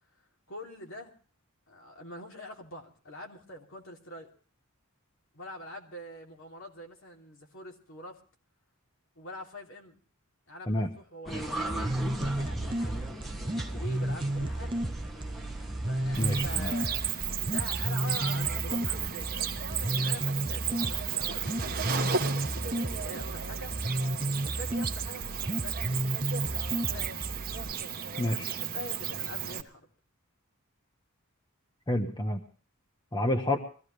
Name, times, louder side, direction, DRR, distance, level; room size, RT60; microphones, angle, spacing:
voice 1, 0.5-1.1 1.7-4.3 5.3-8.2 9.1-10.0 10.5-11.9 12.3-13.1 13.5-14.8 15.9-19.3 19.8-23.7 24.4-25.8 26.9-27.2 28.1-29.9, left 1 dB, 60° left, 1 dB, 3.1 m, -45 dB
sound 1, 11.3-16.7, right 1 dB, ahead, 1.5 m, -38 dB
sound 2, 11.7-27.7, right 1 dB, 20° right, 0.6 m, -33 dB
Cricket, 16.1-29.6, right 8 dB, 40° right, 1.3 m, -34 dB
voice 2, 16.2-16.7 28.2-28.5 31.9-32.4 33.1-33.6, left 1 dB, 20° left, 5 dB, 1.2 m, -29 dB
23.0 x 15.0 x 3.3 m, 0.41 s
head